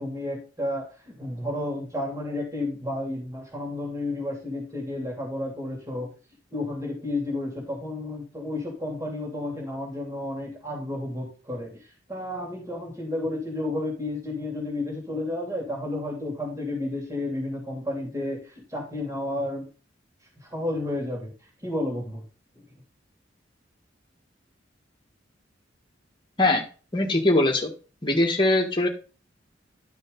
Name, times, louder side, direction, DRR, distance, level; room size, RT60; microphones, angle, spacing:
voice 1, 0.0-6.1 6.5-11.8 12.1-19.7 20.4-21.3 21.6-22.2 22.5-22.6, left 1 dB, 20° right, -1 dB, 3.0 m, -31 dB
voice 2, 26.9-27.7 28.0-28.9, left 2 dB, 25° left, 2 dB, 1.7 m, -21 dB
11.5 x 5.2 x 4.0 m, 0.36 s
head